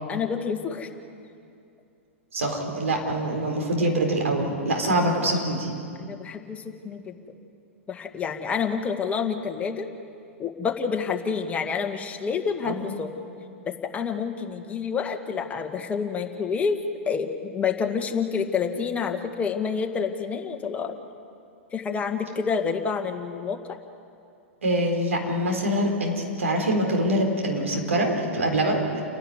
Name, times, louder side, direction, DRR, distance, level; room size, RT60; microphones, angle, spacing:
voice 1, 0.1-0.9 6.0-7.2 7.9-9.9 10.4-13.1 13.7-16.8 17.1-21.0 21.7-23.8, left 6 dB, 20° left, 3 dB, 1.9 m, -28 dB
voice 2, 2.3-5.7 12.6-13.0 24.6-29.0, right 1 dB, 80° right, 2 dB, 4.2 m, -24 dB
29.5 x 11.5 x 9.6 m, 2.5 s
hypercardioid pair, 105°, 7 cm